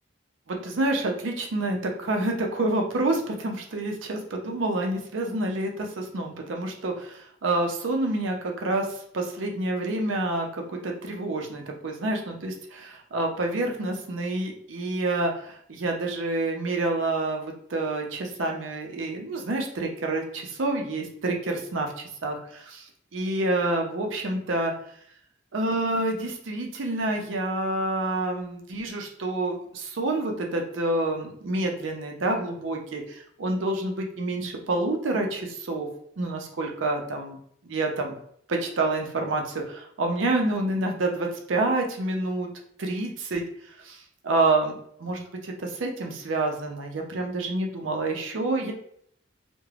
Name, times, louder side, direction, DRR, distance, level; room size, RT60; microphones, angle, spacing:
voice 1, 0.5-8.9 9.1-22.9 23.1-24.7 25.5-35.9 36.2-37.4 37.6-38.2 38.5-42.5 42.8-43.4 43.8-44.7 45.0-48.7, right 2 dB, 80° right, 2 dB, 0.5 m, -28 dB
2.4 x 2.1 x 3.2 m, 0.66 s
head